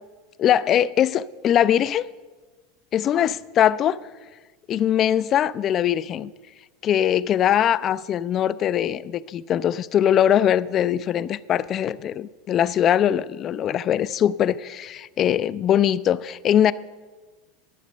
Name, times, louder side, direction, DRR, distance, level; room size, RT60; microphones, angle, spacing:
voice 1, 0.4-2.1 2.9-4.0 4.7-6.3 6.8-16.7, left 10 dB, 40° left, 0.4 m, -21 dB
11.0 x 6.7 x 6.3 m
hypercardioid pair, 95°, 0 cm